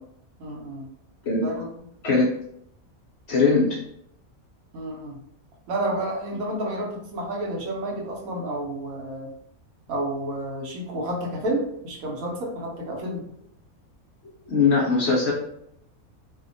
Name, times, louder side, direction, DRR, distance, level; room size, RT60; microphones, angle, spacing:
voice 1, 0.4-0.9 1.4-1.7 4.7-5.2 5.7-9.3 9.9-13.3, right 1 dB, 75° right, -1 dB, 1.1 m, -30 dB
voice 2, 3.3-3.7 14.5-15.3, left 4 dB, 65° left, -4 dB, 0.7 m, -20 dB
2.7 x 2.1 x 2.5 m, 0.74 s
omnidirectional pair, 1.5 m